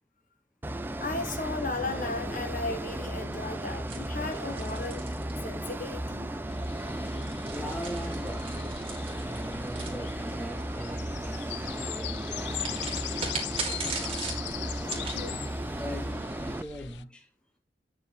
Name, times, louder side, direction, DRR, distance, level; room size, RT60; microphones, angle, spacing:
sound 1, 0.6-16.6, right 1 dB, 10° right, 0.5 m, -35 dB
voice 1, 1.0-6.4 13.1-13.2 14.6-15.4, left 3 dB, 45° left, 1.6 m, -36 dB
sound 2, 3.9-5.9 6.9-10.6 12.6-15.2, right 4 dB, 30° right, 2.5 m, -39 dB
sound 3, 6.5-17.0, left 14 dB, 80° left, 0.4 m, -41 dB
voice 2, 7.5-13.6 15.7-17.3, equal, 5° left, 1.0 m, -41 dB
9.0 x 5.0 x 4.5 m
head